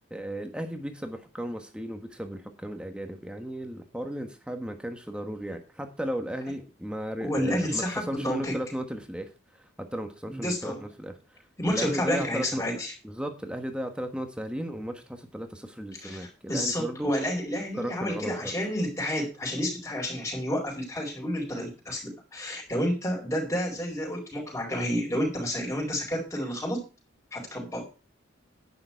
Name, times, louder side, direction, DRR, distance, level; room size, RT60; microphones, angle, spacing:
voice 1, 0.1-11.4 11.7-12.6 13.0-17.1 17.7-18.5, equal, 5° right, 6 dB, 1.3 m, -35 dB
voice 2, 7.2-8.6 10.3-10.8 11.6-12.9 16.0-26.8 27.3-27.8, equal, 15° left, -1 dB, 4.6 m, -30 dB
11.0 x 9.7 x 4.5 m, 0.32 s
head